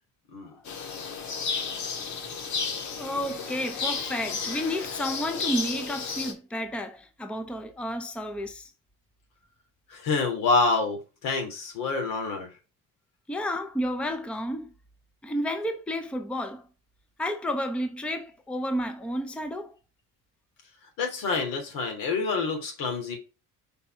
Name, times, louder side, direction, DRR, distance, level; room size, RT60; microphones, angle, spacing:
sound 1, 0.6-6.3, left 5 dB, 60° left, 1.6 m, -33 dB
voice 1, 2.9-8.7 13.3-14.7 15.2-16.7 17.2-19.8, equal, 5° left, 0.6 m, -31 dB
voice 2, 9.9-12.5 21.0-23.2, left 3 dB, 80° left, 2.9 m, -27 dB
5.3 x 4.6 x 4.5 m
cardioid pair, 155°, 33 cm